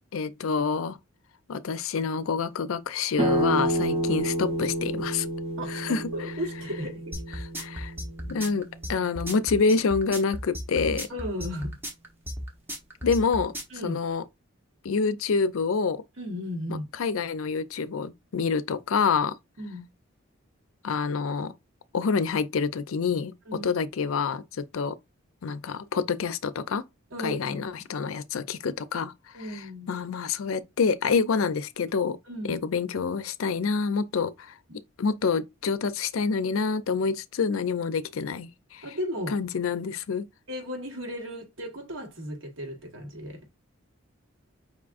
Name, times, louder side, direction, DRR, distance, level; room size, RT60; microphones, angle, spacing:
voice 1, 0.1-1.0 1.5-5.3 5.7-6.0 7.4-7.9 8.3-11.1 13.0-13.5 13.8-14.2 14.8-16.0 16.7-19.3 20.8-21.5 21.9-25.0 25.4-26.8 27.2-29.1 29.5-32.2 32.4-34.5 35.0-38.9 39.3-40.2, left 5 dB, 75° left, 0.5 m, -27 dB
sound 1, 3.2-8.7, equal, 30° right, 0.9 m, -29 dB
voice 2, 5.6-7.2 11.1-11.7 13.7-14.0 16.2-16.8 19.6-19.8 23.5-23.7 27.1-27.4 29.3-29.9 32.3-32.6 38.8-39.4 40.5-43.4, equal, 65° right, 1.4 m, -35 dB
sound 2, 7.1-13.8, equal, 10° right, 0.9 m, -34 dB
5.3 x 3.6 x 2.5 m
head